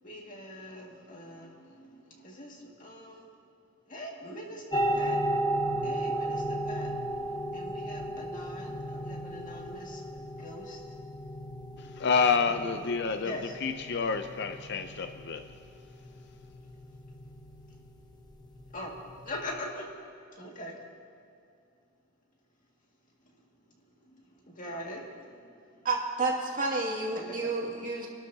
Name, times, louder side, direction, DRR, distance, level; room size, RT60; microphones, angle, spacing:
voice 1, 0.0-3.4 3.9-5.3 5.8-11.0 12.5-12.6 13.2-13.5 18.7-19.0 19.2-19.9 20.3-20.8 23.2-23.5 23.8-25.9 27.1-27.5, left 1 dB, 40° left, 2.1 m, -43 dB
sound 1, 4.7-19.5, right 1 dB, 20° left, 1.0 m, -35 dB
voice 2, 11.8-15.5, left 5 dB, 55° left, 0.6 m, -29 dB
voice 3, 25.8-28.1, right 3 dB, 40° right, 2.4 m, -30 dB
28.5 x 12.0 x 2.8 m
head